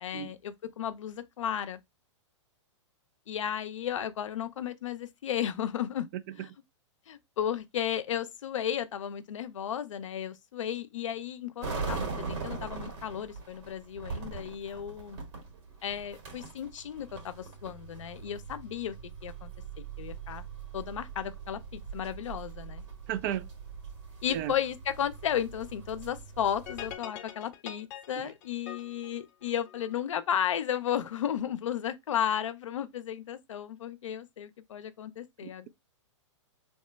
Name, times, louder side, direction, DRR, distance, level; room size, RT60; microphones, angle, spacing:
voice 1, 0.0-1.8 3.3-6.1 6.4-6.5 7.1-15.2 15.8-19.0 19.2-19.5 20.0-20.5 20.7-22.8 24.2-35.7, left 9 dB, 80° left, 0.5 m, -34 dB
sound 1, 11.6-27.0, right 5 dB, 65° right, 1.7 m, -41 dB
voice 2, 23.1-23.5 24.3-24.5 35.4-35.7, right 11 dB, 40° right, 0.4 m, -34 dB
sound 2, 26.7-30.0, left 10 dB, 45° left, 0.7 m, -44 dB
2.9 x 2.1 x 3.3 m
hypercardioid pair, 125°, 16 cm